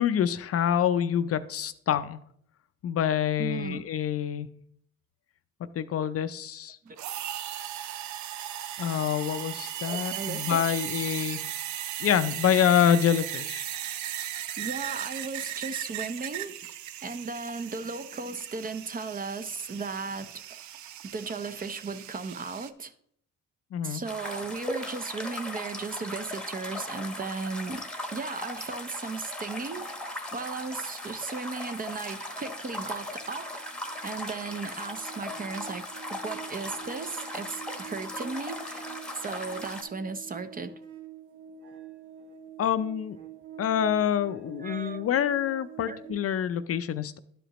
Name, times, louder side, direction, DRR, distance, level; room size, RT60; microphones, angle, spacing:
voice 1, 0.0-2.2 2.8-4.5 5.8-6.8 8.8-11.4 12.0-13.7 23.7-24.0 42.6-43.2 43.6-47.2, left 9 dB, 50° left, 0.5 m, -26 dB
voice 2, 3.4-3.8 6.8-7.0 9.8-10.6 14.6-16.6 17.0-20.6 21.1-22.9 23.8-27.8 28.1-29.9 30.3-33.6 34.0-38.9 39.1-40.8 44.6-45.1 45.8-46.0, right 4 dB, 30° right, 0.6 m, -36 dB
sound 1, 7.0-22.7, right 12 dB, 70° right, 0.5 m, -37 dB
sound 2, 24.0-39.8, left 1 dB, 5° left, 1.1 m, -38 dB
sound 3, 32.5-32.6 32.9-46.1, right 7 dB, 90° right, 1.1 m, -47 dB
11.5 x 5.1 x 2.9 m
cardioid pair, 90°, 30 cm